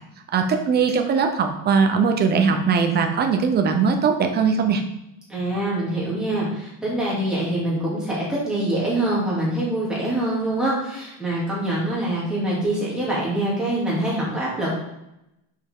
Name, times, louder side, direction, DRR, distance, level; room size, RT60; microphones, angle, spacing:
voice 1, 0.3-4.8, right 5 dB, 25° right, 5 dB, 0.7 m, -20 dB
voice 2, 5.3-14.7, right 1 dB, ahead, -7 dB, 2.5 m, -24 dB
6.6 x 5.7 x 3.7 m, 0.86 s
cardioid pair, 165°, 41 cm